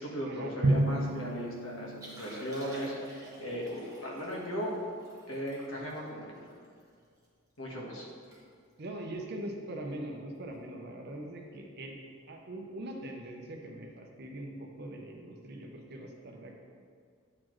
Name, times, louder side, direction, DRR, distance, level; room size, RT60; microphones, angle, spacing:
voice 1, 0.0-4.8 5.3-6.4 7.6-8.1, equal, 75° left, -3 dB, 1.3 m, -37 dB
Drum, 0.6-2.8, right 1 dB, 90° right, 0.6 m, -31 dB
Liquid, 2.0-7.3 7.7-7.8 8.1-8.4 8.7-8.9 9.5-9.7 11.2-11.3, equal, 15° right, 1.2 m, -50 dB
voice 2, 8.8-12.0 12.3-16.6, right 1 dB, 50° right, 2 dB, 0.7 m, -42 dB
8.6 x 4.2 x 3.1 m, 2.1 s
head